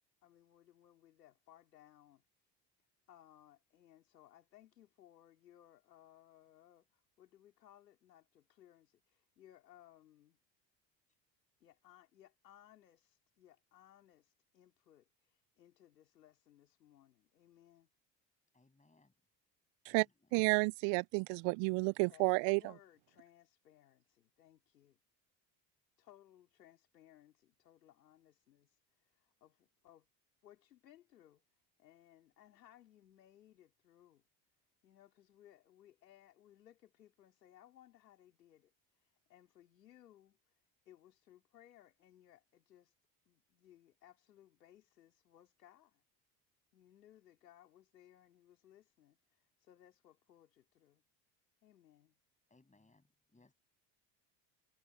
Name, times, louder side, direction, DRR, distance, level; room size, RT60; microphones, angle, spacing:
voice 1, 0.0-2.2 3.1-10.4 11.6-17.9 22.1-25.0 26.0-30.1 30.4-34.2 34.8-40.5 40.9-42.9 43.3-46.0 46.7-51.0 51.6-52.2, left 12 dB, 90° left, 4.2 m, -64 dB
voice 2, 18.5-19.1 19.9-20.4 52.5-53.5, left 3 dB, 15° left, 7.8 m, -69 dB
voice 3, 20.3-22.6, right 31 dB, 60° right, 0.6 m, -31 dB
hypercardioid pair, 65°, 48 cm